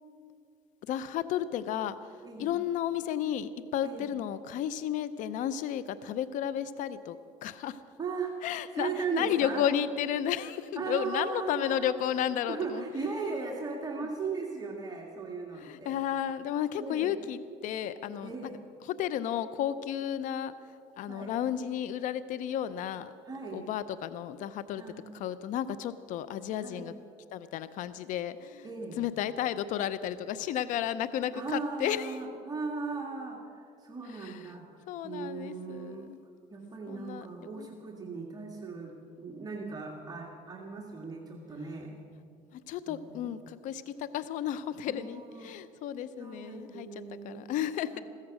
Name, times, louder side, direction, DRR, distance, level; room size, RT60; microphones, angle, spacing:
voice 1, 0.9-2.0 2.4-7.8 8.4-12.8 15.6-18.3 18.9-20.5 21.0-23.1 23.5-24.8 25.1-26.9 27.3-28.7 29.0-32.2 34.2-34.4 34.9-36.2 36.9-37.7 42.5-46.9 47.2-48.0, left 10 dB, 65° left, 14 dB, 0.6 m, -33 dB
voice 2, 8.0-8.5 8.7-9.7 10.8-12.2 12.5-15.9 16.8-17.2 18.2-18.6 21.0-21.4 23.3-23.7 24.7-25.1 26.6-26.9 28.6-29.0 31.3-34.6 35.0-36.1 36.5-42.0 42.9-43.3 44.9-45.6 46.2-47.4 47.9-48.0, right 4 dB, 25° right, 0 dB, 1.9 m, -37 dB
15.5 x 14.0 x 6.1 m, 2.4 s
supercardioid pair, 95°, 14 cm